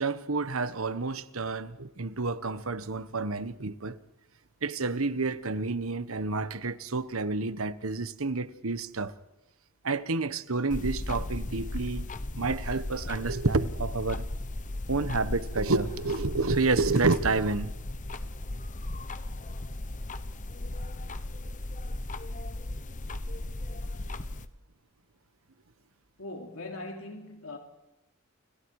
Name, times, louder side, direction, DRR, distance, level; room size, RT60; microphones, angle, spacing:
voice 1, 0.0-4.0 4.6-9.1 9.8-12.0 12.3-14.2 14.9-17.7, right 3 dB, 85° right, 1.3 m, -29 dB
sound 1, 10.7-24.5, left 1 dB, 40° left, 1.1 m, -36 dB
voice 2, 26.2-27.6, left 2 dB, 90° left, 3.1 m, -40 dB
29.5 x 29.0 x 4.9 m
head